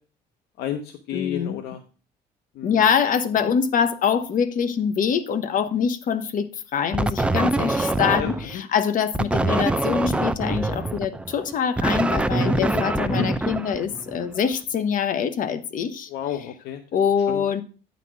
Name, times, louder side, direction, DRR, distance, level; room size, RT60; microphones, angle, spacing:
voice 1, 0.6-1.8 2.5-2.8 7.3-7.4 8.1-8.3 12.5-12.8 13.2-13.3 16.1-16.8 17.3-17.4, left 10 dB, 80° left, 0.8 m, -31 dB
voice 2, 1.1-1.6 2.6-16.1 16.9-17.6, left 7 dB, 55° left, 1.0 m, -24 dB
sound 1, 6.9-8.6 9.1-14.3, right 2 dB, 5° right, 0.4 m, -24 dB
9.1 x 4.1 x 6.0 m
cardioid pair, 110°, 17 cm